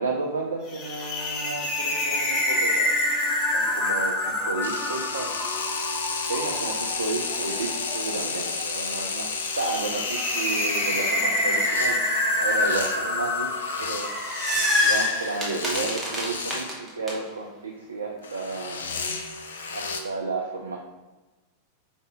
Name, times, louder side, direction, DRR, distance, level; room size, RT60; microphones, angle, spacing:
voice 1, 0.0-2.9 3.5-5.3 6.3-12.0 12.4-13.5 13.8-14.1 14.8-18.9 19.7-20.8, right 3 dB, 75° right, -1 dB, 0.4 m, -32 dB
sound 1, 0.7-15.0, left 1 dB, 30° left, 0.9 m, -27 dB
sound 2, 4.6-16.8 18.2-20.0, left 4 dB, 65° left, 0.4 m, -33 dB
sound 3, 13.9-17.1, left 1 dB, 5° right, 1.0 m, -26 dB
5.1 x 2.7 x 3.4 m, 1.2 s
figure-of-eight pair, 90°, 0 cm